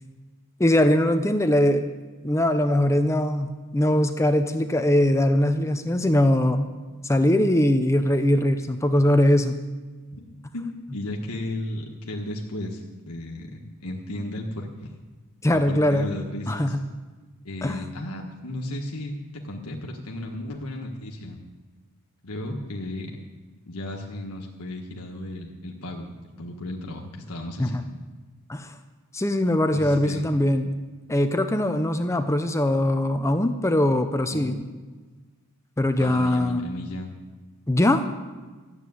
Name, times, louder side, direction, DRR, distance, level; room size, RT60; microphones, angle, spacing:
voice 1, 0.6-1.9 2.2-6.7 7.0-9.6 15.4-16.1 16.5-16.8 17.6-17.9 27.6-27.8 28.5-28.8 29.1-30.7 31.1-34.6 35.8-36.6 37.7-38.0, left 1 dB, 15° left, 8 dB, 0.7 m, -21 dB
voice 2, 10.5-15.0 15.5-16.8 17.4-19.1 19.4-21.4 22.2-23.2 23.7-26.1 26.4-27.9 29.7-30.3 34.3-34.5 36.0-37.1, left 1 dB, 85° left, 0 dB, 1.5 m, -34 dB
13.0 x 8.1 x 9.5 m, 1.3 s
head